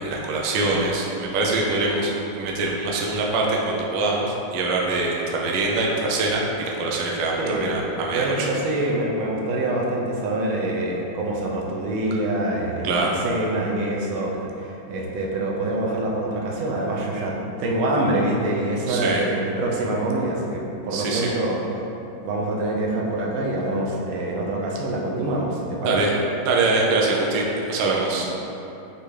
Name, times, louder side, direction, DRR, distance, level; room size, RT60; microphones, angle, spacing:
voice 1, 0.0-2.1 2.4-8.5 12.8-13.1 18.9-19.2 20.9-21.3 25.8-26.1 26.4-28.3, right 3 dB, 75° right, -2 dB, 1.2 m, -23 dB
voice 2, 7.4-7.7 8.1-21.6 22.2-26.0 28.1-28.2, right 1 dB, 90° right, -2 dB, 1.5 m, -25 dB
5.5 x 2.6 x 3.1 m, 3.0 s
omnidirectional pair, 2.2 m